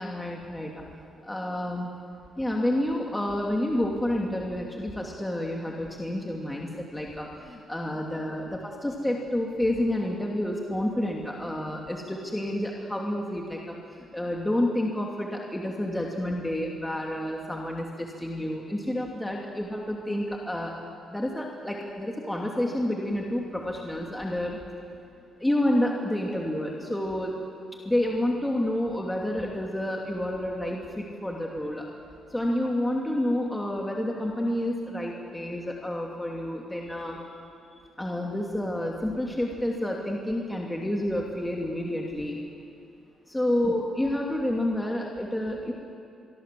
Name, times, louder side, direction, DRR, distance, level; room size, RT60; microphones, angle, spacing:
voice 1, 0.0-0.8 1.3-1.9 2.4-20.7 21.1-24.6 25.4-27.4 27.8-31.9 32.3-37.2 38.0-42.4 43.3-45.7, left 1 dB, 10° left, -1 dB, 2.9 m, -29 dB
25.0 x 22.5 x 7.8 m, 2.5 s
cardioid pair, 90°, 0 cm